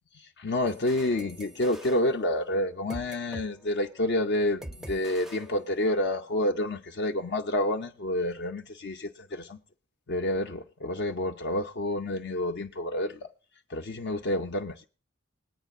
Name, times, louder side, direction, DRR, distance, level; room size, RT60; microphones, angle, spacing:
voice 1, 0.2-9.6 10.1-13.2 13.7-14.8, left 1 dB, 55° left, 0.6 m, -29 dB
sound 1, 0.7-3.5 3.8-4.0 4.6-6.1, right 1 dB, ahead, 0.5 m, -45 dB
20.5 x 9.0 x 2.4 m
head